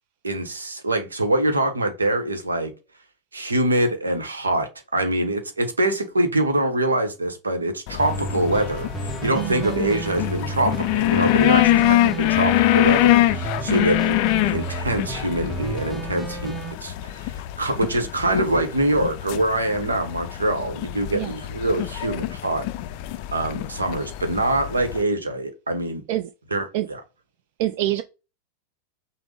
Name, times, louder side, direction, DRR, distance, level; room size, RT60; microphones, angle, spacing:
voice 1, 0.2-2.7 3.3-14.2 14.5-16.6 16.8-22.7 23.3-26.0 26.5-27.0, right 1 dB, 75° right, 0.8 m, -24 dB
sound 1, 7.9-25.0, left 15 dB, 45° left, 0.4 m, -24 dB
sound 2, 8.0-16.7, right 5 dB, 10° right, 0.7 m, -32 dB
voice 2, 9.4-9.7 13.7-14.0 21.1-21.3 26.1-26.3 26.7-26.9 27.6-28.0, right 15 dB, 50° right, 0.3 m, -26 dB
5.9 x 2.0 x 3.6 m
figure-of-eight pair, 90°, 0 cm